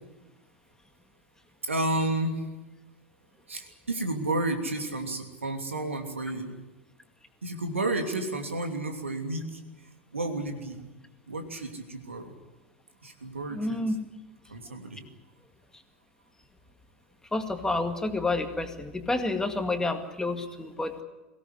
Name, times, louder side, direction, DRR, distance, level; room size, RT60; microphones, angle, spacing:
voice 1, 1.6-2.4 3.5-6.5 7.4-9.6 10.1-10.8 11.3-12.3 13.0-13.8 14.5-15.1, right 2 dB, 80° right, 5 dB, 2.9 m, -31 dB
voice 2, 13.5-14.0 17.3-21.0, left 2 dB, 10° left, 6 dB, 2.1 m, -29 dB
23.0 x 17.5 x 9.8 m, 1.1 s
figure-of-eight pair, 85°, 7 cm